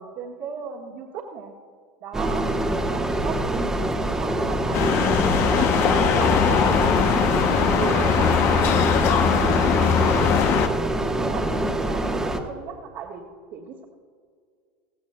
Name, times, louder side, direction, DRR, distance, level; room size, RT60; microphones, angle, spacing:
voice 1, 0.0-1.5 2.0-6.8 7.3-10.4 11.2-13.2 13.5-13.8, right 6 dB, 55° right, -3 dB, 1.6 m, -36 dB
sound 1, 2.1-12.4, right 1 dB, 10° right, 1.2 m, -25 dB
sound 2, 4.7-10.7, left 7 dB, 50° left, 0.8 m, -21 dB
17.5 x 15.0 x 2.3 m, 2.1 s
hypercardioid pair, 100°, 5 cm